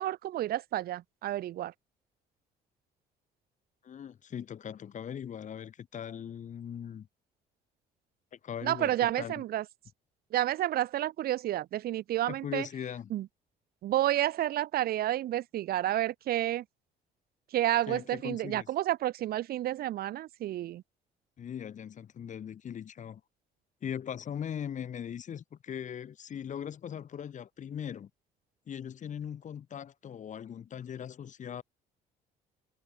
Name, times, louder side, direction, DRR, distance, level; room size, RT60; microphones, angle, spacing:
voice 1, 0.0-1.7 8.6-9.6 10.3-12.7 13.1-13.3 13.8-16.6 17.5-20.8, right 13 dB, 65° right, 1.2 m, -30 dB
voice 2, 3.8-7.1 8.3-9.4 12.3-13.1 17.9-18.7 21.4-23.2 23.8-28.1 28.7-31.6, left 8 dB, 45° left, 3.6 m, -40 dB
cardioid pair, 110°, 17 cm